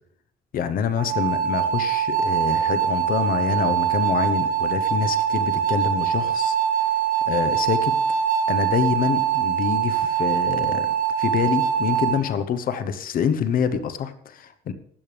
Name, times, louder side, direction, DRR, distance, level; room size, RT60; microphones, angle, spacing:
voice 1, 0.5-6.6 7.3-7.9 8.5-10.9 11.2-14.7, left 7 dB, 55° left, 12 dB, 1.0 m, -26 dB
sound 1, 1.0-12.2, right 9 dB, 55° right, 2.2 m, -23 dB
16.0 x 11.0 x 3.4 m, 0.67 s
cardioid pair, 110°, 17 cm